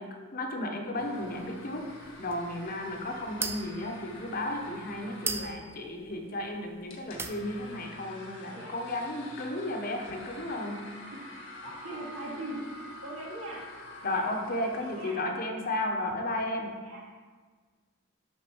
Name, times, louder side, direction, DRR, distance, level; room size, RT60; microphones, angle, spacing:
voice 1, 0.0-10.9 14.0-16.7, left 1 dB, 45° left, 2 dB, 1.0 m, -34 dB
sound 1, 1.0-15.1, left 1 dB, 75° left, 1.4 m, -47 dB
sound 2, 1.2-6.8 7.1-7.8, right 4 dB, 10° right, 0.3 m, -39 dB
voice 2, 11.6-12.6 13.0-13.6 14.0-14.2 14.6-15.3 16.8-17.1, right 1 dB, 80° right, -5 dB, 2.4 m, -41 dB
11.5 x 4.1 x 4.5 m, 1.5 s
head